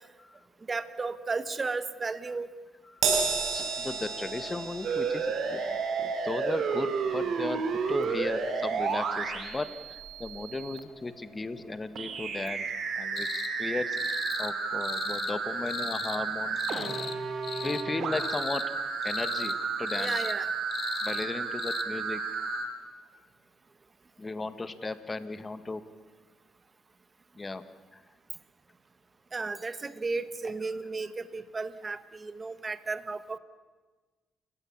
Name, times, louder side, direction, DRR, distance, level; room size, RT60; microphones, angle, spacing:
voice 1, 0.7-2.5 20.0-20.5 29.3-33.4, right 3 dB, 30° right, 12 dB, 1.3 m, -34 dB
Crash cymbal, 3.0-9.6 10.0-10.2 11.2-11.3, right 5 dB, 80° right, 5.7 m, -34 dB
voice 2, 3.5-12.7 13.0-17.0 17.6-18.6 19.0-20.2 21.0-22.2 24.2-25.8 27.4-27.6 27.9-28.0, left 3 dB, 25° left, 11 dB, 1.5 m, -36 dB
sound 1, 4.8-10.8 12.0-22.7, right 5 dB, 65° right, 3.4 m, -32 dB
sound 2, 13.2-13.5 13.9-14.5 14.8-15.3 15.7-16.2 16.6-17.2 17.4-17.8 18.1-18.7 19.0-19.6 19.9-20.4 20.7-21.3 21.6-21.8, left 7 dB, 55° left, 1.4 m, -37 dB
29.5 x 16.5 x 7.3 m, 1.3 s
cardioid pair, 90°, 0 cm